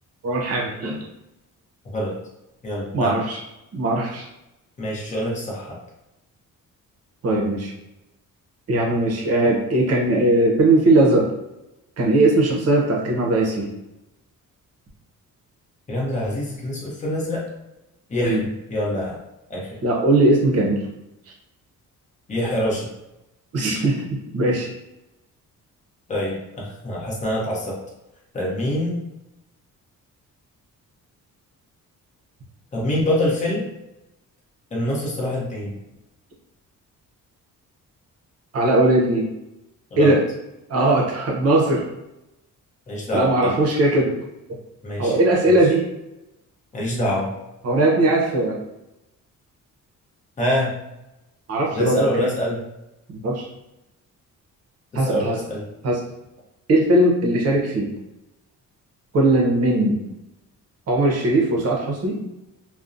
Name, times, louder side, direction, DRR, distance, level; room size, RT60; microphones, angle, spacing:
voice 1, 0.2-1.0 2.9-3.4 3.7-4.3 7.2-7.7 8.7-11.3 12.0-13.7 18.2-18.4 19.8-20.8 23.5-24.7 38.5-39.3 40.0-40.2 40.7-41.9 43.1-44.1 45.0-45.9 47.6-48.6 51.5-52.3 53.1-53.5 54.9-55.4 55.8-56.0 56.7-57.9 59.1-60.0 60.9-62.2, right 2 dB, 50° right, -1 dB, 0.7 m, -19 dB
voice 2, 2.6-3.1 4.8-5.8 15.9-17.5 18.1-19.2 19.5-19.7 22.3-22.9 26.1-27.8 28.3-29.0 32.7-33.7 34.7-35.7 39.9-40.2 42.9-43.6 44.8-45.2 45.4-45.5 46.7-47.3 50.4-50.8 51.7-52.6 54.9-55.6, left 1 dB, 20° left, -4 dB, 0.7 m, -25 dB
2.5 x 2.1 x 2.4 m, 0.91 s
cardioid pair, 130°, 33 cm